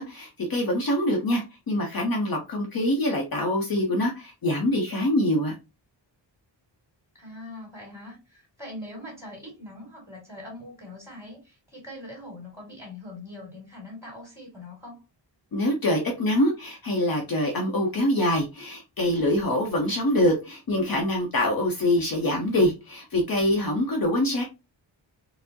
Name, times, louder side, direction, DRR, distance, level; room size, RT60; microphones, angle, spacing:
voice 1, 0.0-5.6 15.5-24.4, left 1 dB, 50° left, 0 dB, 0.7 m, -24 dB
voice 2, 7.1-15.0, left 1 dB, 5° right, -2 dB, 2.1 m, -42 dB
4.3 x 2.0 x 2.7 m, 0.27 s
wide cardioid pair, 160°, 45 cm